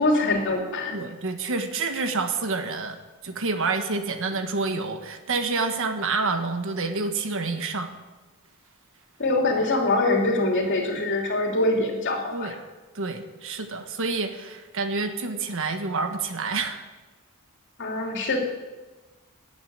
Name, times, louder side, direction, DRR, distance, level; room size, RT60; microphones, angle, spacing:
voice 1, 0.0-1.0 9.2-12.5 17.8-18.4, left 2 dB, 55° left, 1 dB, 3.0 m, -24 dB
voice 2, 0.9-3.0 3.2-7.9 12.3-12.5 12.9-16.8, right 4 dB, 65° right, 7 dB, 1.4 m, -28 dB
13.0 x 8.1 x 9.4 m, 1.2 s
head